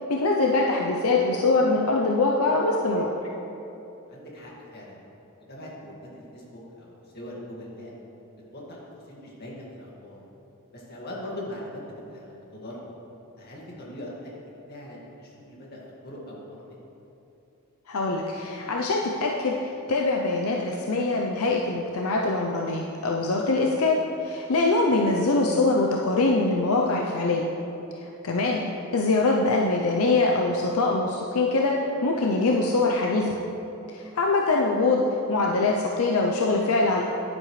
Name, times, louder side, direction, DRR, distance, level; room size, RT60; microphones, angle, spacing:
voice 1, 0.1-3.1 17.9-27.4 28.0-33.4 33.9-37.1, left 3 dB, 80° left, -1 dB, 0.7 m, -23 dB
voice 2, 4.1-5.0 5.5-8.0 8.5-8.8 9.0-10.2 10.7-12.9 13.4-14.3 14.7-16.6, left 1 dB, 50° left, -4 dB, 2.1 m, -41 dB
10.5 x 9.8 x 3.3 m, 2.9 s
head